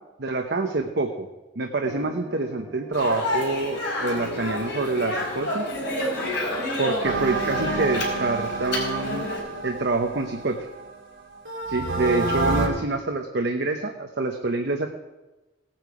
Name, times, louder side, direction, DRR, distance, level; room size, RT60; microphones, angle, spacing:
voice 1, 0.2-1.3 1.6-5.7 6.8-9.3 9.6-10.6 11.7-14.9, right 3 dB, 60° right, 4 dB, 0.8 m, -26 dB
sound 1, 1.9-7.9, left 2 dB, ahead, 3.9 m, -41 dB
Speech, 2.9-9.4, left 1 dB, 60° left, 4.2 m, -29 dB
sound 2, 7.0-10.9 11.4-12.7, right 3 dB, 80° right, 3.0 m, -28 dB
17.5 x 8.9 x 4.8 m, 1.1 s
head